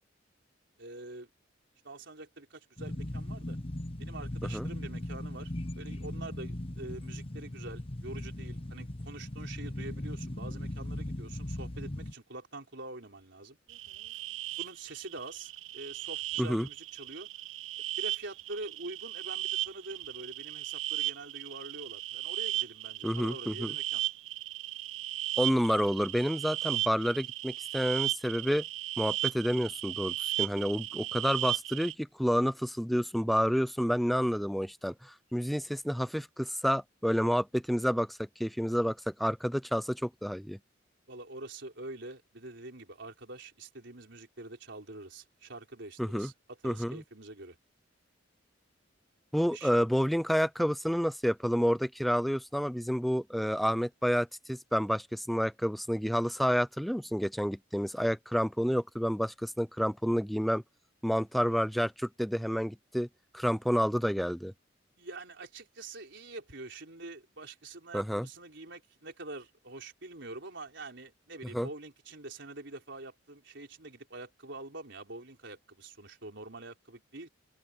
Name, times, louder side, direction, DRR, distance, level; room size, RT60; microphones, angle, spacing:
voice 1, 0.8-1.3 1.8-3.6 4.0-13.6 14.6-17.3 18.0-24.0 41.1-46.3 46.6-47.6 49.5-49.7 65.0-77.3, right 2 dB, 65° right, 4.9 m, -45 dB
sound 1, 2.8-12.1, left 1 dB, 30° left, 1.1 m, -38 dB
sound 2, 13.7-31.9, right 15 dB, 85° right, 0.4 m, -36 dB
voice 2, 16.4-16.7 23.0-23.7 25.4-28.6 29.0-40.6 46.0-46.3 46.6-47.0 49.3-60.6 61.0-63.1 63.3-64.5 67.9-68.3 71.5-71.7, equal, ahead, 0.5 m, -29 dB
head